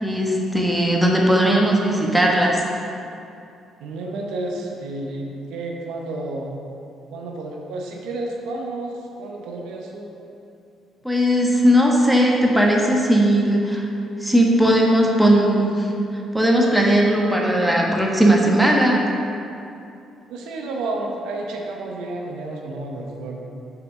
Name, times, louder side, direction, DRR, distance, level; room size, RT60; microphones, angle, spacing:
voice 1, 0.0-2.6 11.0-13.8 14.2-15.9 16.3-19.0, equal, 5° right, -1 dB, 1.2 m, -18 dB
voice 2, 3.8-6.6 7.1-10.1 20.3-23.5, right 2 dB, 85° right, 0 dB, 0.7 m, -31 dB
5.8 x 4.0 x 5.9 m, 2.6 s
supercardioid pair, 70°, 0 cm